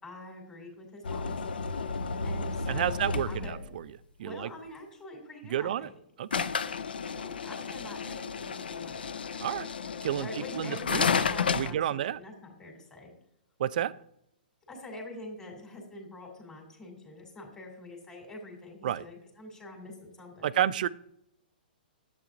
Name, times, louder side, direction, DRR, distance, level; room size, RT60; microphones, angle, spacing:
voice 1, 0.0-1.6 2.2-3.7 4.2-5.9 7.1-9.1 10.2-13.1 14.7-20.5, left 1 dB, 15° left, 0 dB, 2.7 m, -45 dB
sound 1, 1.0-3.8 6.3-11.7, left 5 dB, 80° left, 0.5 m, -32 dB
voice 2, 2.7-3.9 4.2-4.5 5.5-5.9 6.2-6.4 9.4-9.7 10.0-10.3 10.6-11.1 11.5-12.2 13.6-13.9 18.8-19.1 20.4-20.9, right 11 dB, 60° right, 17 dB, 0.4 m, -30 dB
11.0 x 8.0 x 2.6 m, 0.75 s
hypercardioid pair, 125°, 5 cm